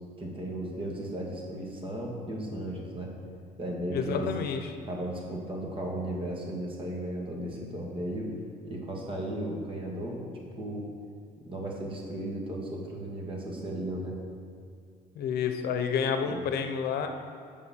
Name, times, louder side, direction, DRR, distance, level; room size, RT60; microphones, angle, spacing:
voice 1, 0.2-3.2 3.6-4.3 4.9-8.3 8.6-10.2 10.6-10.8 11.4-14.2 16.2-16.4, right 1 dB, 30° right, -1 dB, 1.8 m, -35 dB
voice 2, 3.9-4.7 15.2-17.1, left 7 dB, 65° left, 6 dB, 0.8 m, -29 dB
7.0 x 5.4 x 6.9 m, 2.3 s
cardioid pair, 110°, 17 cm